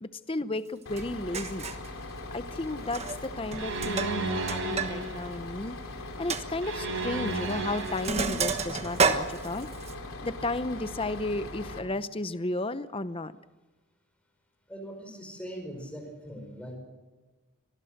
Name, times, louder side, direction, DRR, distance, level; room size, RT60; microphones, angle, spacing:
voice 1, 0.0-1.7 2.3-5.8 6.2-9.7 10.2-13.3, left 2 dB, 25° left, 13 dB, 0.7 m, -33 dB
Bus, 0.8-11.8, left 2 dB, 65° left, 3.9 m, -41 dB
Sink (filling or washing), 1.0-1.1 1.3-1.9 2.8-3.2 3.5-4.9 5.2-5.3 5.7-5.8 6.3-6.4 7.3-7.5 7.8-9.9, right 5 dB, 30° right, 1.3 m, -29 dB
sound 1, 3.6-5.3 6.6-8.3, right 3 dB, 60° right, 5.5 m, -33 dB
voice 2, 14.7-16.8, equal, 5° left, 4 dB, 5.0 m, -41 dB
25.0 x 20.0 x 6.6 m, 1.3 s
head